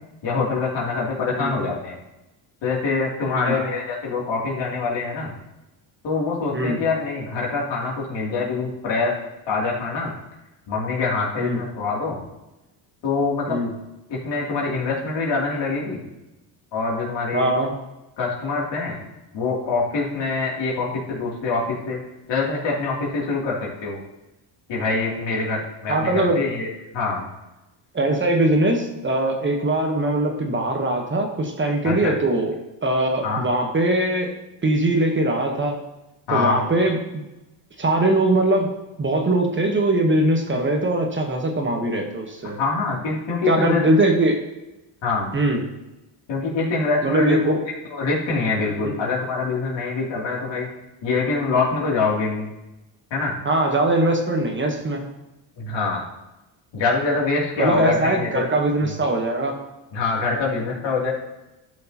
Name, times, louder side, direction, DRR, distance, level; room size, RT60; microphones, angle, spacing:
voice 1, 0.2-1.9 2.6-5.3 6.0-9.1 9.5-10.1 10.7-12.2 13.0-13.6 14.1-16.0 16.7-17.5 18.2-19.0 19.3-22.0 22.3-24.0 24.7-26.7 26.9-27.3 31.8-32.1 33.2-33.4 36.3-36.6 42.6-43.8 45.0-45.3 46.3-47.5 47.9-50.7 51.0-52.5 53.1-53.3 55.6-56.0 56.7-58.4 58.8-58.9 59.9-61.1, left 4 dB, 60° left, -4 dB, 2.9 m, -24 dB
voice 2, 17.3-17.8 25.9-26.4 27.9-32.5 32.8-34.3 34.6-35.8 36.3-37.0 37.8-38.7 39.0-42.6 43.5-44.4 45.3-45.6 47.0-47.6 48.8-48.9 53.4-55.0 57.6-59.6, right 1 dB, 25° right, 3 dB, 1.1 m, -21 dB
12.0 x 6.4 x 2.9 m, 0.99 s
cardioid pair, 110°, 48 cm